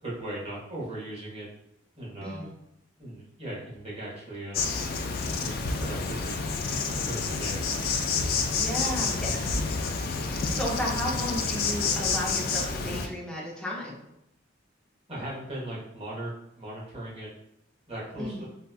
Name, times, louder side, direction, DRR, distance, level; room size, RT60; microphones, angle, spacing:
voice 1, 0.0-1.5 2.0-2.4 3.0-6.4 7.0-7.6 8.7-8.9 9.2-9.4 15.1-17.3 17.9-18.5, right 1 dB, 30° right, -6 dB, 1.0 m, -38 dB
Insect, 4.5-13.1, left 4 dB, 50° left, 0.3 m, -29 dB
voice 2, 8.5-9.5 10.2-14.0 18.2-18.4, equal, 5° left, -5 dB, 0.7 m, -34 dB
3.8 x 2.3 x 2.3 m, 0.83 s
head